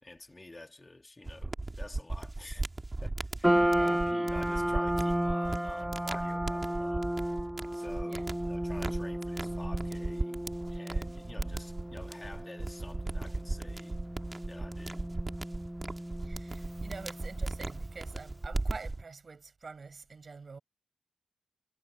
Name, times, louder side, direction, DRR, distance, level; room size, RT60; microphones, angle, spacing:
voice 1, 0.0-2.7 3.0-7.1 7.7-14.0 14.5-15.0, left 2 dB, 25° left, 2.5 m, -49 dB
sound 1, 1.3-19.0, right 2 dB, 30° right, 2.1 m, -37 dB
sound 2, 3.4-17.8, right 1 dB, 10° right, 0.9 m, -33 dB
voice 2, 3.7-4.0 8.1-8.3 16.2-20.6, right 4 dB, 50° right, 5.7 m, -46 dB
supercardioid pair, 50°, 0 cm